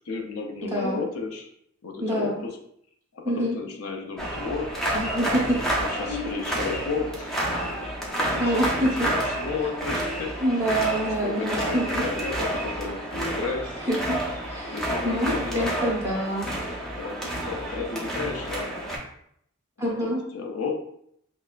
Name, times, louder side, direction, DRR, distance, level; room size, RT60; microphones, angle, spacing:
voice 1, 0.1-1.5 1.8-2.6 3.1-4.8 5.8-10.4 11.2-13.8 14.7-16.2 17.0-18.9 20.0-20.8, left 4 dB, 70° left, 3 dB, 0.6 m, -33 dB
voice 2, 0.6-1.0 2.0-2.4 3.2-3.5 4.9-5.6 6.1-6.2 8.4-8.9 10.4-12.0 13.9-14.2 14.4-16.5 19.8-20.2, right 1 dB, 15° right, -4 dB, 0.9 m, -26 dB
sound 1, 4.2-19.0, right 1 dB, ahead, 0.6 m, -30 dB
5.5 x 2.0 x 2.4 m, 0.70 s
head